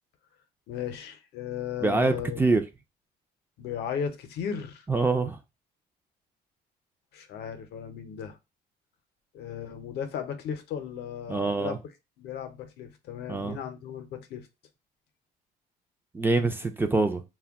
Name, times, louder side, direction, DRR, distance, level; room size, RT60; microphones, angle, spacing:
voice 1, 0.7-2.4 3.6-4.9 7.1-8.4 9.3-11.8 12.2-14.5, left 8 dB, 75° left, 0.6 m, -36 dB
voice 2, 1.8-2.6 4.9-5.4 11.3-11.8 13.3-13.6 16.1-17.2, right 3 dB, 15° right, 0.3 m, -25 dB
2.1 x 2.1 x 3.5 m
cardioid pair, 110°, 17 cm